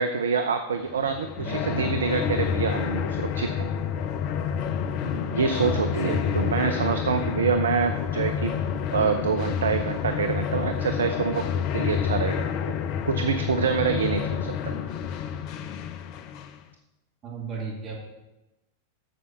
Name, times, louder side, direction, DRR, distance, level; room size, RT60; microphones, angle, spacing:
voice 1, 0.0-3.7 5.3-8.5 8.9-11.5 11.7-12.5 13.1-14.7, right 5 dB, 70° right, 8 dB, 0.6 m, -26 dB
sound 1, 0.9-16.6, left 8 dB, 40° left, 0.5 m, -29 dB
voice 2, 1.4-2.0 5.6-6.5 17.2-17.9, right 4 dB, 30° right, -3 dB, 2.7 m, -35 dB
sound 2, 5.0-13.3, left 3 dB, 70° left, 1.1 m, -45 dB
7.7 x 6.9 x 6.4 m, 1.0 s
figure-of-eight pair, 90°, 0 cm